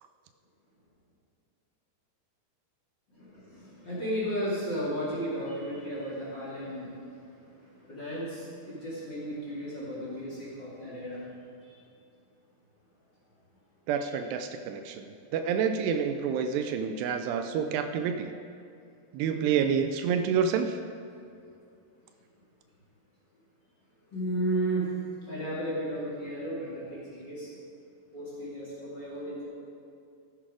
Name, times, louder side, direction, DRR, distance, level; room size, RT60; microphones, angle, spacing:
voice 1, 3.1-11.2 11.6-11.8 14.0-14.1 24.1-24.9 25.2-27.5 28.1-29.5, right 1 dB, 30° left, -7 dB, 2.4 m, -34 dB
voice 2, 13.9-18.4 19.1-20.8, right 7 dB, 80° right, 8 dB, 2.6 m, -28 dB
14.5 x 8.6 x 4.8 m, 2.5 s
omnidirectional pair, 4.9 m